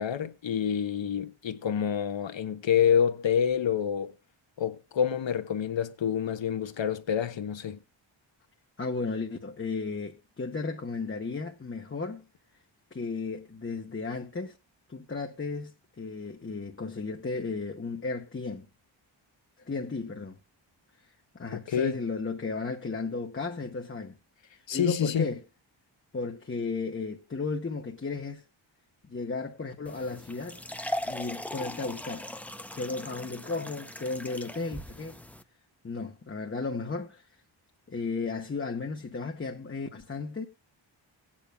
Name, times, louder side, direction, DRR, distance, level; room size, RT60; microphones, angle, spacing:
voice 1, 0.0-4.1 4.6-7.8 21.5-22.0 24.7-25.3, left 8 dB, 70° left, 1.0 m, -27 dB
voice 2, 8.8-12.2 12.9-14.5 14.9-18.7 19.6-20.4 21.3-24.2 24.5-25.4 26.1-28.4 29.0-30.6 31.1-32.3 32.7-35.2 35.8-37.3 37.9-40.5, left 4 dB, 25° left, 1.0 m, -34 dB
sound 1, 29.9-35.4, equal, 5° left, 0.6 m, -39 dB
18.5 x 8.7 x 2.2 m
wide cardioid pair, 155°, 48 cm